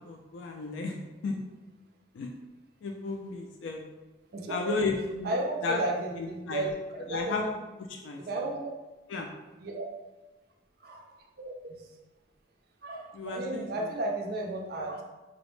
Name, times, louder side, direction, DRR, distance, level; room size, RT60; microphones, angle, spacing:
voice 1, 0.1-0.9 1.2-1.3 2.1-2.3 2.8-3.8 4.5-5.3 5.6-5.8 6.2-6.6 7.1-7.4 8.0-8.2 9.1-9.3 13.1-13.7, left 4 dB, 85° left, 2 dB, 0.3 m, -33 dB
voice 2, 4.3-4.8 5.2-6.7 7.1-7.6 8.2-8.7 9.6-9.9 10.8-11.1 11.4-11.8 12.8-15.0, right 2 dB, 55° right, 2 dB, 0.5 m, -33 dB
3.9 x 2.0 x 3.1 m, 1.1 s
head